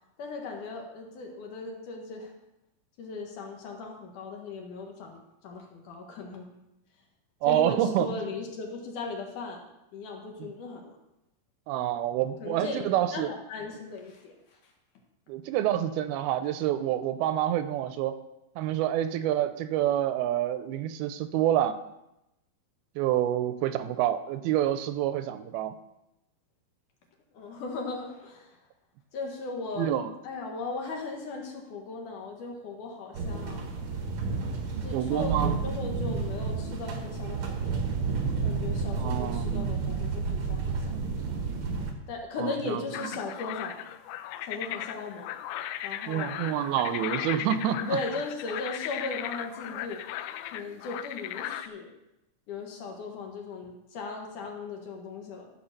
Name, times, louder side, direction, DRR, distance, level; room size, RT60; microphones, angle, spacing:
voice 1, 0.2-2.3 3.0-6.5 7.4-9.6 9.9-11.0 12.4-12.8 13.1-14.7 27.3-28.6 29.1-29.9 30.2-33.7 34.8-37.9 38.4-41.0 42.1-43.8 44.4-45.4 45.8-46.3 47.8-50.0 50.5-51.9 52.5-55.5, left 3 dB, 65° left, 1 dB, 2.7 m, -37 dB
voice 2, 7.4-8.2 10.4-10.5 11.7-13.3 15.3-18.2 18.6-21.8 23.0-25.7 29.8-30.1 34.9-35.6 39.0-39.8 42.4-43.1 46.1-48.0, right 11 dB, 85° right, 11 dB, 2.5 m, -28 dB
sound 1, 33.1-41.9, right 4 dB, 65° right, 1.3 m, -31 dB
sound 2, 42.9-51.7, left 12 dB, 85° left, 2.5 m, -37 dB
14.5 x 5.2 x 6.6 m, 0.88 s
omnidirectional pair, 4.5 m